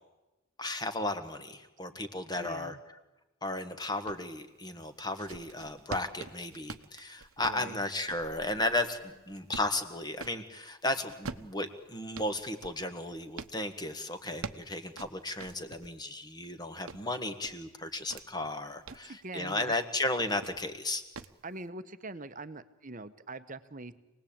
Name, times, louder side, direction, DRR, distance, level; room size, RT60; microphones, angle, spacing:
voice 1, 0.6-2.8 3.4-21.0, left 2 dB, 20° left, 8 dB, 1.7 m, -34 dB
voice 2, 2.4-2.8 7.5-7.8 19.0-19.7 21.4-23.9, right 2 dB, 35° right, 12 dB, 1.1 m, -43 dB
sound 1, 4.1-4.3 4.9-10.4 11.1-13.6 14.1-16.0 16.4-18.3 18.7-19.1 20.0-20.7 21.1-21.4, right 4 dB, 70° right, 1.1 m, -46 dB
27.5 x 19.5 x 8.8 m, 1.1 s
head